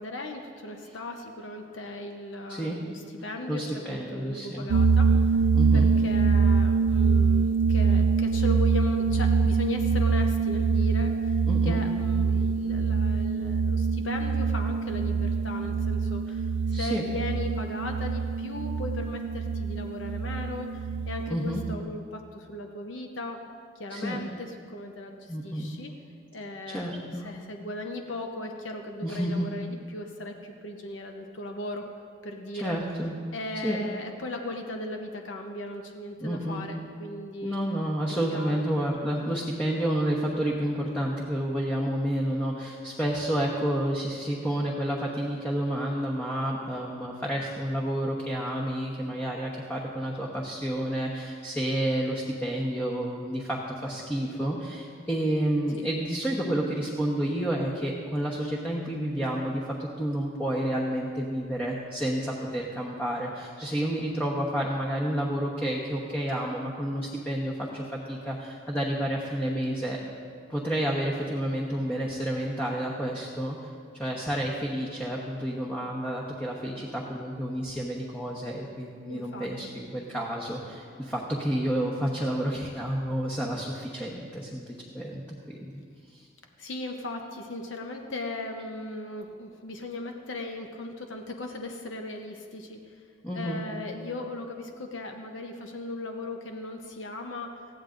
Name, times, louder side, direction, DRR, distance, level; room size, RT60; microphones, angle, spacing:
voice 1, 0.0-5.4 5.7-23.4 23.7-25.9 26.3-31.8 32.2-32.8 33.3-37.6 38.3-38.6 55.7-55.8 79.1-79.7 86.6-93.0 93.3-97.6, left 2 dB, 80° left, 3 dB, 0.9 m, -37 dB
voice 2, 2.5-2.9 3.5-4.7 5.5-5.9 11.5-11.8 16.7-17.0 21.3-21.6 23.9-24.2 25.3-25.7 26.7-27.3 29.0-29.6 32.5-33.1 33.6-33.8 36.2-36.7 37.4-70.0 70.5-84.6 84.9-85.7 86.1-86.3 93.2-93.6, right 1 dB, 10° left, -3 dB, 1.1 m, -30 dB
sound 1, 4.7-21.8, right 5 dB, 75° right, 0.4 m, -24 dB
20.0 x 15.0 x 2.6 m, 2.1 s
head